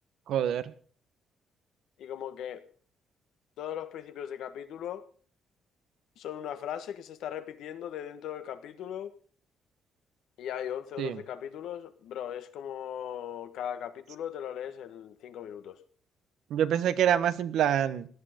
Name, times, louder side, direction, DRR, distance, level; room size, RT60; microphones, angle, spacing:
voice 1, 0.3-0.7 11.0-11.2 16.5-18.1, right 10 dB, 80° right, 1.1 m, -26 dB
voice 2, 2.0-2.6 3.6-5.1 6.2-9.1 10.4-15.8, left 10 dB, 80° left, 1.5 m, -38 dB
17.5 x 11.5 x 5.2 m
cardioid pair, 90°, 0 cm